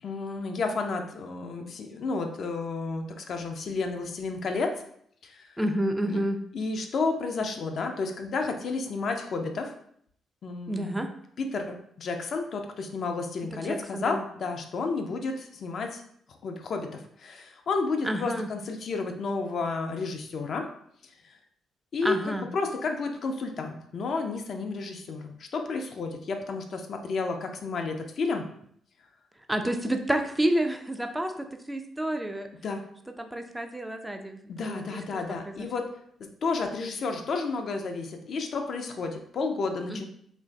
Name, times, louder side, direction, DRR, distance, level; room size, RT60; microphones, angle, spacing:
voice 1, 0.0-4.7 5.2-5.6 6.1-6.2 6.5-9.7 10.4-11.0 11.4-16.0 16.3-20.7 21.2-21.3 21.9-28.5 32.6-32.8 34.5-35.9 36.4-40.0, left 4 dB, 60° left, 4 dB, 0.4 m, -31 dB
voice 2, 5.6-6.4 10.7-11.1 13.5-14.2 18.0-18.5 22.0-22.5 29.5-32.5 33.2-35.5 39.9-40.0, right 1 dB, 10° right, 6 dB, 0.4 m, -30 dB
3.0 x 2.5 x 2.3 m, 0.66 s
hypercardioid pair, 45°, 0 cm